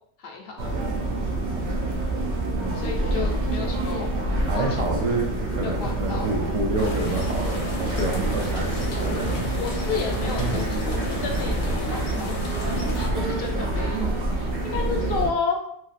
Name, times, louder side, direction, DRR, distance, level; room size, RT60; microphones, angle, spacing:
voice 1, 0.2-0.7 2.7-4.1 4.5-4.8 5.6-6.3 9.6-12.4 12.9-15.6, left 5 dB, 65° left, 1 dB, 0.8 m, -32 dB
sound 1, 0.6-15.3, right 2 dB, 80° right, 0.9 m, -27 dB
voice 2, 4.5-9.4 10.1-10.5, right 2 dB, 45° right, -2 dB, 0.5 m, -28 dB
sound 2, 6.8-13.1, left 3 dB, 90° left, 1.0 m, -35 dB
3.1 x 2.6 x 2.4 m, 0.71 s
omnidirectional pair, 1.1 m